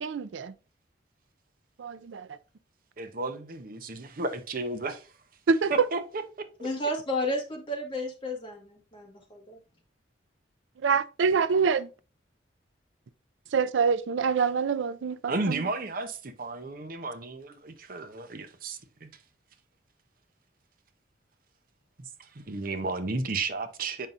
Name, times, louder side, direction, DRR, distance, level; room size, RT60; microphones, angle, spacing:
voice 1, 0.0-0.5 1.8-2.4 5.5-5.9 10.8-11.9 13.5-15.7, right 5 dB, 85° right, 0.4 m, -26 dB
voice 2, 3.0-5.1 5.7-6.7 15.3-19.1 22.0-24.1, right 3 dB, 50° right, 0.7 m, -33 dB
voice 3, 6.6-9.6, left 1 dB, 25° left, 1.7 m, -32 dB
7.4 x 5.4 x 2.5 m
head